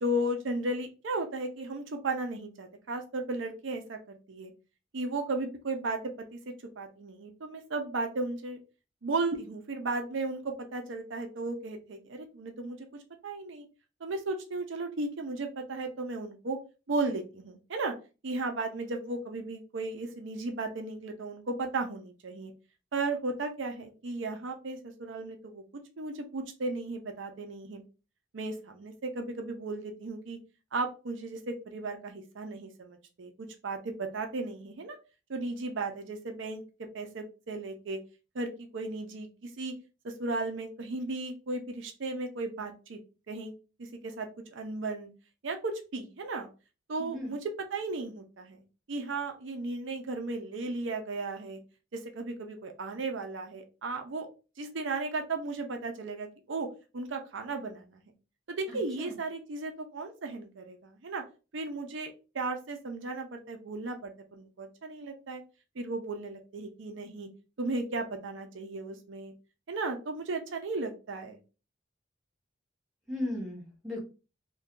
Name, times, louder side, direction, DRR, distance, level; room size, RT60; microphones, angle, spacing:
voice 1, 0.0-4.5 4.9-6.4 6.8-8.6 9.0-13.6 14.0-16.6 16.9-17.9 18.2-22.5 22.9-25.6 26.0-27.8 28.3-30.4 30.7-33.3 33.6-35.0 35.3-38.0 38.3-39.7 40.0-43.0 43.3-43.5 43.8-45.1 45.4-46.5 46.9-48.6 48.9-51.6 51.9-54.3 54.6-56.7 56.9-58.0 58.5-61.2 61.5-65.4 65.8-67.3 67.6-69.3 69.7-71.4, right 2 dB, 75° right, 5 dB, 0.5 m, -35 dB
voice 2, 47.0-47.3 58.7-59.1 73.1-74.0, left 1 dB, ahead, -5 dB, 1.2 m, -36 dB
2.6 x 2.2 x 3.6 m, 0.32 s
head